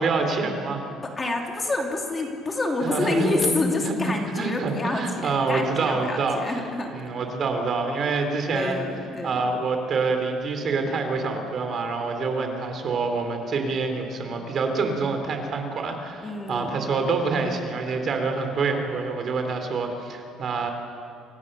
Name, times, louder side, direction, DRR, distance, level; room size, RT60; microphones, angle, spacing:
voice 1, 0.0-0.8 2.8-3.5 3.8-6.6 6.9-8.9 9.2-20.7, right 4 dB, 35° right, 5 dB, 3.8 m, -26 dB
voice 2, 1.0-6.9 8.5-9.4 16.2-16.8, left 2 dB, 20° left, 1 dB, 2.9 m, -28 dB
29.0 x 26.0 x 6.9 m, 2.5 s
cardioid pair, 155°, 0 cm